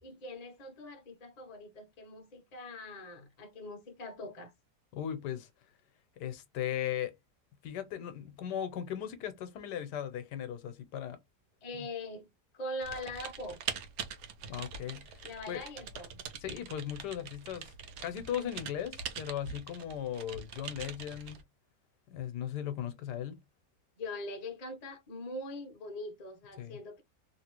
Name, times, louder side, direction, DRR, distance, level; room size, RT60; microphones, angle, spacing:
voice 1, 0.0-4.5 11.6-12.3 12.5-13.6 15.2-16.2 24.0-27.0, left 1 dB, 40° left, 0.6 m, -42 dB
voice 2, 4.9-5.5 6.2-7.1 7.6-11.2 14.5-15.6 16.4-17.7 18.0-21.4 22.1-23.4 26.6-26.8, left 10 dB, 80° left, 1.2 m, -37 dB
Typing, 12.8-21.4, right 7 dB, 75° right, 1.2 m, -43 dB
3.0 x 2.7 x 2.9 m
omnidirectional pair, 1.8 m